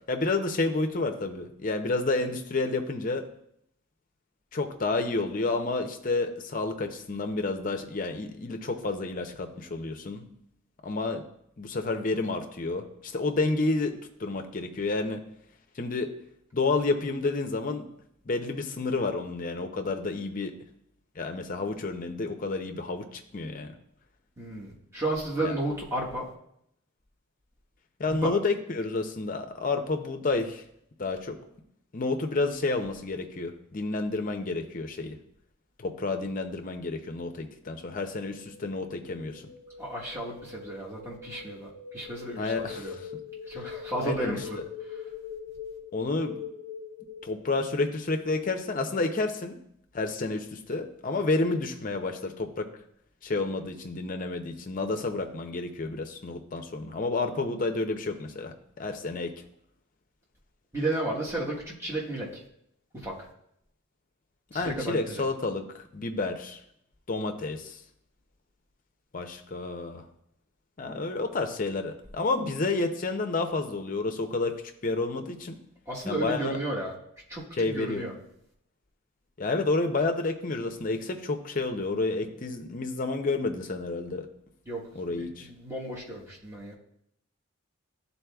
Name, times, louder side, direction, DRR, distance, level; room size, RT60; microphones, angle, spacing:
voice 1, 0.1-3.2 4.5-10.2 10.8-11.2 11.6-13.9 14.2-15.2 15.8-16.1 16.5-17.9 18.3-20.5 21.2-23.1 23.3-23.7 25.4-25.5 28.0-30.6 31.0-31.4 31.9-35.2 35.8-39.4 42.4-43.1 44.0-44.4 45.9-46.4 47.2-49.6 49.9-52.7 53.2-59.3 64.5-66.6 67.1-67.8 69.1-70.0 70.8-74.6 74.8-75.6 76.1-76.6 77.6-78.0 79.4-84.3 84.9-85.5, left 3 dB, 40° left, 5 dB, 0.6 m, -30 dB
voice 2, 24.4-26.3 28.2-28.3 39.8-42.9 43.5-44.6 60.7-62.4 62.9-63.2 64.5-65.2 75.9-76.9 77.3-78.1 84.6-86.7, right 1 dB, 15° right, -5 dB, 1.2 m, -33 dB
sound 1, 37.7-47.6, left 7 dB, 85° right, 0.9 m, -43 dB
11.5 x 4.1 x 2.3 m, 0.74 s
head